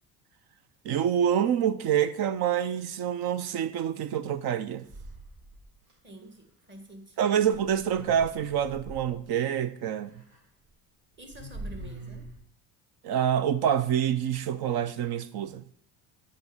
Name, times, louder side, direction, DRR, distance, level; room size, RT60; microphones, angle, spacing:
voice 1, 0.8-4.9 7.2-10.2 13.0-15.6, right 9 dB, 55° right, 0.8 m, -27 dB
sound 1, 4.8-5.9 7.4-9.2 10.1-10.4 10.7-10.8 11.1-12.4, right 1 dB, 70° right, 4.0 m, -43 dB
voice 2, 6.0-7.3 11.2-12.3, right 1 dB, 25° right, 2.2 m, -48 dB
7.8 x 5.5 x 7.2 m
hypercardioid pair, 75°, 45 cm